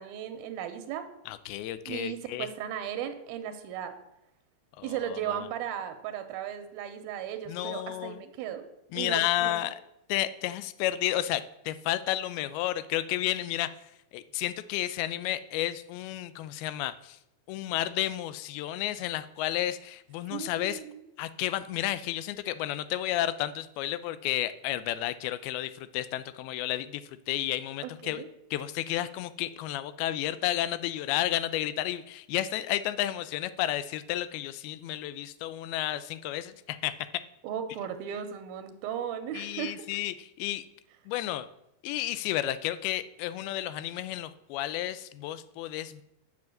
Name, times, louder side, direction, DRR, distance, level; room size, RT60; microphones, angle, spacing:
voice 1, 0.0-1.1 1.9-4.0 4.8-8.6 8.9-9.6 20.3-21.0 27.8-28.3 37.4-40.0, right 9 dB, 85° right, 8 dB, 2.6 m, -36 dB
voice 2, 1.3-2.5 4.8-5.5 7.5-8.2 8.9-9.8 10.1-13.7 14.1-17.2 17.5-20.8 21.2-28.2 28.5-37.2 39.3-40.6 41.1-41.5 41.8-46.0, left 14 dB, 85° left, 14 dB, 2.5 m, -32 dB
7.7 x 5.9 x 7.6 m, 0.84 s
omnidirectional pair, 4.3 m